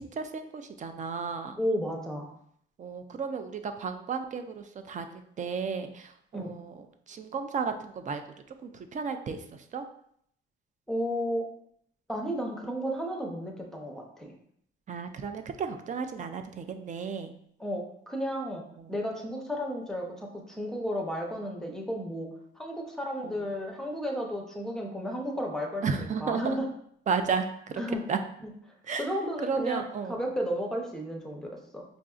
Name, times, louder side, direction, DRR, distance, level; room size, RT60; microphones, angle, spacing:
voice 1, 0.0-1.6 2.8-8.2 8.6-9.8 14.9-17.3 18.8-18.9 23.2-23.5 25.8-26.6 27.1-27.8 28.1-28.2 28.8-29.1 29.4-30.3, right 5 dB, 35° right, 7 dB, 0.4 m, -33 dB
voice 2, 1.6-2.3 6.3-6.5 10.9-11.4 12.1-14.3 17.6-22.3 22.6-26.7 27.8-28.0 28.4-28.5 29.0-29.8 30.1-31.8, equal, ahead, 1 dB, 0.6 m, -33 dB
4.9 x 2.6 x 2.3 m, 0.67 s
cardioid pair, 105°, 21 cm